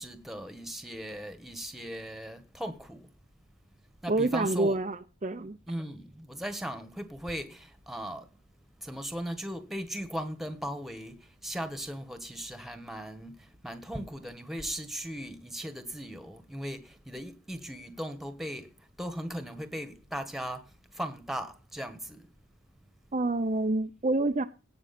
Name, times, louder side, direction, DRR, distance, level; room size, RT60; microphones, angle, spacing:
voice 1, 0.0-3.1 4.0-4.8 5.7-8.3 8.8-22.3, equal, ahead, 1.5 m, -38 dB
voice 2, 4.1-5.6 23.1-24.4, right 2 dB, 35° right, 0.6 m, -27 dB
17.5 x 6.2 x 4.3 m
head